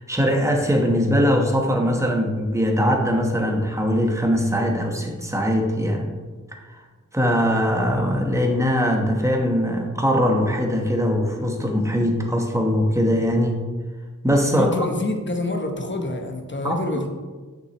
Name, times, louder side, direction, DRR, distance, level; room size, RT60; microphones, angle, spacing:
voice 1, 0.0-6.1 7.1-13.6 14.2-14.7 16.6-16.8, equal, 10° right, 1 dB, 1.1 m, -21 dB
voice 2, 14.5-17.1, left 2 dB, 35° left, 4 dB, 1.0 m, -27 dB
6.4 x 6.1 x 3.0 m, 1.4 s
wide cardioid pair, 50°, 33 cm